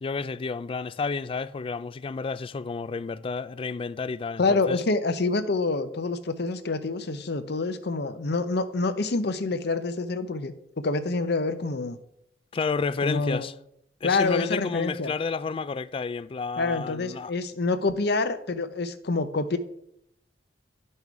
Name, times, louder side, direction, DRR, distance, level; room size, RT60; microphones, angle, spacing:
voice 1, 0.0-4.8 12.5-13.5 14.0-17.3, left 4 dB, 30° left, 0.3 m, -31 dB
voice 2, 4.4-12.0 13.0-13.5 14.0-15.1 16.6-19.6, left 3 dB, 65° left, 0.8 m, -27 dB
11.0 x 5.5 x 4.7 m
head